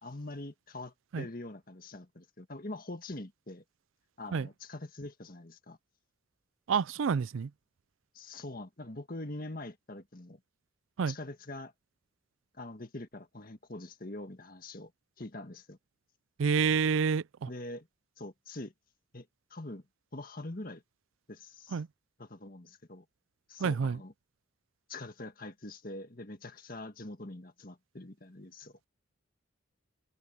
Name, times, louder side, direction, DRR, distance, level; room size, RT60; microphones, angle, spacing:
voice 1, 0.0-3.6 4.2-5.8 8.1-10.4 11.1-11.7 12.5-14.9 15.2-15.8 17.5-17.9 18.2-18.7 19.1-19.8 20.1-20.8 21.3-21.8 22.2-23.0 23.5-24.1 24.9-28.8, left 2 dB, 45° left, 1.8 m, -44 dB
voice 2, 6.7-7.5 11.0-11.1 16.4-17.5 21.7-21.9 23.6-24.0, right 6 dB, 70° right, 0.4 m, -28 dB
head